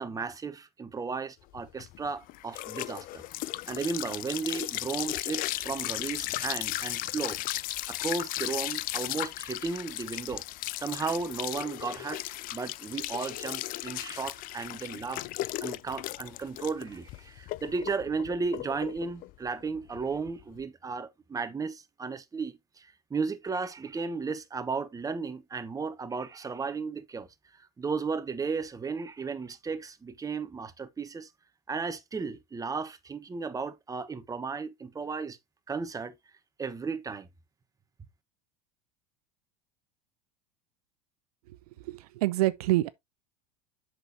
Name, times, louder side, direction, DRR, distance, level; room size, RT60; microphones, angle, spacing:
voice 1, 0.0-3.2 3.7-7.4 7.9-10.4 10.8-12.2 12.5-15.2 15.6-31.3 31.7-35.4 35.7-36.1 36.6-37.3, right 4 dB, 15° right, 1.1 m, -34 dB
sound 1, 1.5-20.6, left 17 dB, 45° left, 0.5 m, -36 dB
voice 2, 41.5-42.9, right 17 dB, 70° right, 0.6 m, -27 dB
7.8 x 6.2 x 2.8 m
hypercardioid pair, 85°, 20 cm